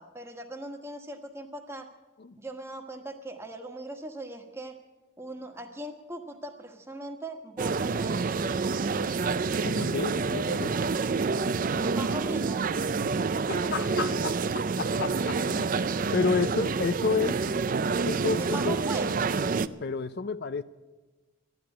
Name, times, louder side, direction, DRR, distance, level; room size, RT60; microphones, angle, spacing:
voice 1, 0.0-1.9 2.4-4.7 5.2-8.7 11.8-12.6 18.4-19.2, right 1 dB, 15° right, 1.4 m, -39 dB
sound 1, 7.6-19.7, right 4 dB, 45° right, 0.4 m, -28 dB
voice 2, 9.6-10.8 13.0-13.1 13.5-15.8 16.1-17.4 18.1-18.8 19.8-20.6, left 4 dB, 55° left, 0.5 m, -30 dB
14.0 x 10.5 x 9.7 m
head